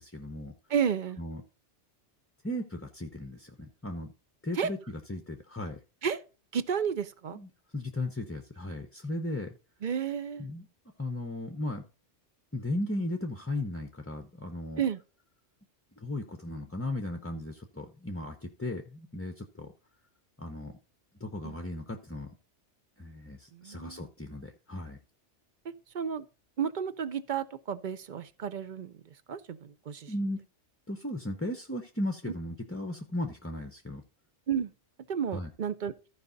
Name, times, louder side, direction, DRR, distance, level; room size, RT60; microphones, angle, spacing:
voice 1, 0.0-0.5 1.2-1.4 2.4-4.1 4.4-5.8 7.3-9.6 10.4-10.7 11.0-11.8 12.5-14.8 16.0-19.7 20.4-20.8 21.2-22.3 23.0-25.0 30.1-30.4 30.9-34.0 35.3-35.5, left 1 dB, 15° left, 0.6 m, -36 dB
voice 2, 0.7-1.2 4.6-4.7 6.0-6.2 6.5-7.4 9.8-10.5 14.8-15.0 21.4-21.6 23.5-24.0 25.9-26.3 26.6-29.0 29.3-30.1 34.5-34.7 35.1-35.9, right 7 dB, 50° right, 0.7 m, -32 dB
14.0 x 4.9 x 3.9 m
omnidirectional pair, 1.2 m